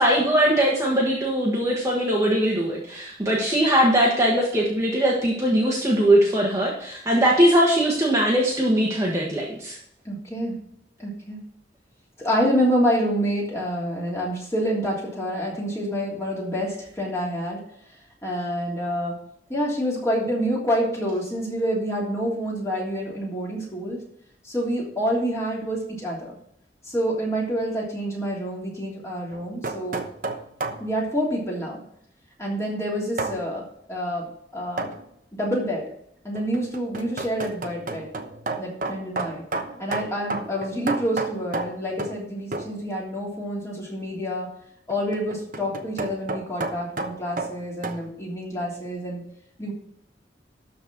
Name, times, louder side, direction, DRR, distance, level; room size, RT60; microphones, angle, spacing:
voice 1, 0.0-9.8, right 1 dB, 15° right, -3 dB, 1.5 m, -21 dB
voice 2, 10.0-10.6 11.0-11.4 12.2-17.6 18.2-19.2 19.5-24.0 24.4-26.3 26.9-30.0 30.8-31.8 32.4-33.6 33.9-34.9 35.3-35.8 36.2-38.1 38.6-39.4 39.8-44.5 44.9-49.2 49.6-49.7, equal, 15° left, -4 dB, 3.0 m, -27 dB
sound 1, 29.3-30.9 33.2-33.4 34.8-35.0 36.3-42.2 42.5-42.8 44.9-48.0, right 3 dB, 45° right, 1.0 m, -31 dB
12.5 x 4.3 x 6.1 m, 0.72 s
head